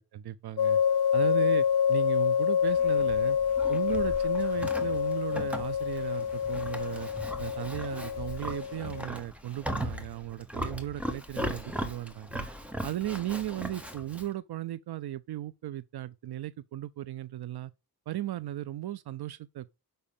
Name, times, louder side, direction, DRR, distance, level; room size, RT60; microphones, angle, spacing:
voice 1, 0.1-0.8 1.1-3.4 3.7-7.1 7.4-12.5 12.8-17.7 18.1-19.7, right 13 dB, 75° right, 0.6 m, -36 dB
sound 1, 0.6-9.1, left 8 dB, 75° left, 0.8 m, -27 dB
Livestock farm animals working animals, 2.6-14.3, equal, 5° right, 1.1 m, -39 dB
6.8 x 5.2 x 7.1 m
wide cardioid pair, 180°, 39 cm